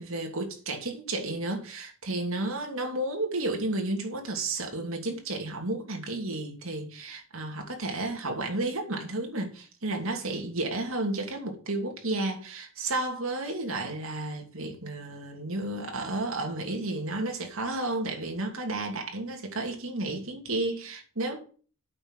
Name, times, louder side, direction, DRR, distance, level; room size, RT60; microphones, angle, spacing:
voice 1, 0.0-21.4, right 2 dB, 75° right, 2.8 m, -32 dB
8.8 x 6.0 x 8.2 m
head